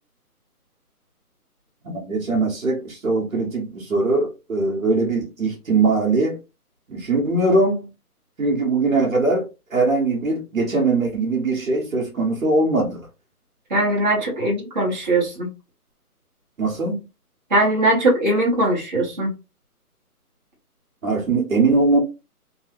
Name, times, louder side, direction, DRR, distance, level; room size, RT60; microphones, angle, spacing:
voice 1, 1.8-6.4 6.9-7.9 8.4-13.1 16.6-17.0 21.0-22.0, right 3 dB, 60° right, 1.1 m, -21 dB
voice 2, 13.7-15.5 17.5-19.3, right 1 dB, 30° right, 1.1 m, -20 dB
3.1 x 2.0 x 2.9 m
hypercardioid pair, 175°, 46 cm